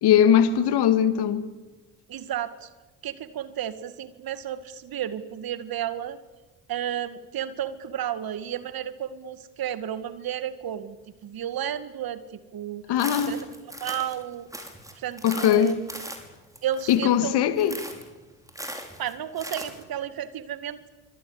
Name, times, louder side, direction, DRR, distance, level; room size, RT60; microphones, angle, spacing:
voice 1, 0.0-1.5 12.9-13.4 15.2-15.7 16.9-17.8, left 9 dB, 55° left, 2.4 m, -20 dB
voice 2, 2.1-2.7 3.0-6.2 6.7-11.0 11.2-12.8 13.3-13.5 13.8-14.5 14.9-15.8 16.6-17.4 19.0-20.9, right 10 dB, 45° right, 2.1 m, -32 dB
sound 1, 13.0-14.2 14.5-17.2 17.6-18.1 18.5-19.8, right 1 dB, 5° right, 5.9 m, -38 dB
28.0 x 25.5 x 8.3 m
figure-of-eight pair, 50°, 47 cm